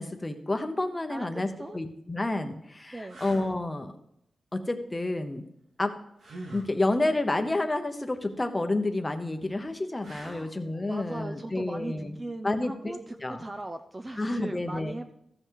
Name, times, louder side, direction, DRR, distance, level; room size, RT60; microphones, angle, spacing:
voice 1, 0.0-1.5 1.7-3.9 4.5-5.4 5.8-5.9 6.5-12.2 12.4-12.9 13.2-13.4 14.2-14.9, left 2 dB, 15° left, 6 dB, 0.9 m, -29 dB
voice 2, 1.1-1.8 2.9-3.2 10.2-10.5 10.9-15.1, right 2 dB, 20° right, 7 dB, 0.5 m, -39 dB
sound 1, 1.7-1.8 2.4-2.5 3.1-3.6 6.2-6.7 10.0-10.6 13.6-13.7, right 2 dB, 75° right, 2.5 m, -44 dB
15.0 x 5.7 x 4.7 m, 0.76 s
wide cardioid pair, 170°, 0 cm